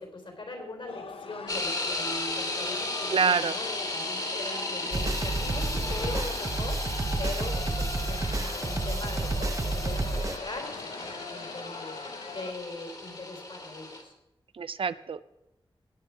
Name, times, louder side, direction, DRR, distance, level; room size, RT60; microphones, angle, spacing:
voice 1, 0.0-14.1, left 2 dB, 65° left, 3 dB, 3.8 m, -40 dB
sound 1, 0.9-12.5, left 4 dB, 90° left, 0.8 m, -42 dB
sound 2, 1.5-14.0, left 2 dB, 45° left, 2.3 m, -35 dB
voice 2, 3.1-3.5 14.5-15.3, right 6 dB, 75° right, 15 dB, 0.5 m, -26 dB
sound 3, 4.9-10.4, right 2 dB, 35° right, 0.8 m, -30 dB
17.0 x 9.0 x 4.6 m, 0.91 s
wide cardioid pair, 70°, 9 cm